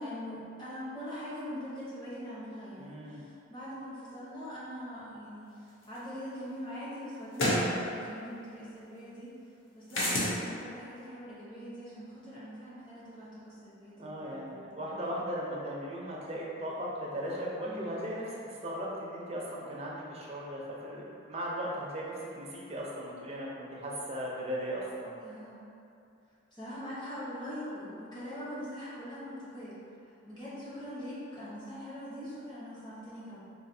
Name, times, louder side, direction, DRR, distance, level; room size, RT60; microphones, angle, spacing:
voice 1, 0.0-9.3 9.7-15.2 17.6-18.0 25.2-25.6 26.5-29.8 30.2-33.4, equal, 20° left, -10 dB, 0.9 m, -42 dB
voice 2, 2.8-3.2 13.9-21.0 21.3-25.1, equal, 30° right, -5 dB, 0.5 m, -37 dB
sound 1, 5.9-6.0 7.3-7.7 9.9-10.3, left 1 dB, 75° left, 0.7 m, -27 dB
4.1 x 2.6 x 2.6 m, 2.6 s
head